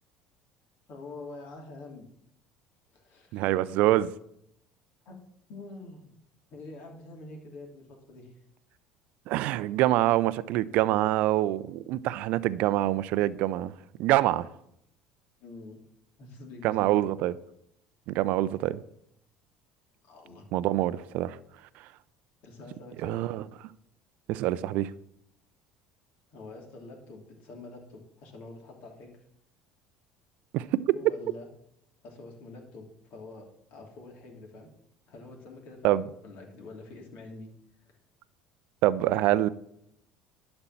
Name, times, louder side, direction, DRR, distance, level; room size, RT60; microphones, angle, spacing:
voice 1, 0.9-2.1 2.9-3.5 5.0-5.2 5.5-6.2 6.5-8.3 15.4-15.8 16.2-16.9 20.0-20.4 22.4-23.3 26.3-29.2 30.9-31.5 32.0-34.7 35.1-37.5 37.8-37.9, left 2 dB, 60° left, 3.0 m, -46 dB
voice 2, 3.3-4.1 9.3-13.7 14.0-14.5 16.6-17.3 18.1-18.8 20.5-21.4 23.0-23.4 24.3-24.9 30.5-30.8 35.8-36.0 38.8-39.5, right 15 dB, 65° right, 0.5 m, -25 dB
11.5 x 4.4 x 7.3 m
hypercardioid pair, 65°, 3 cm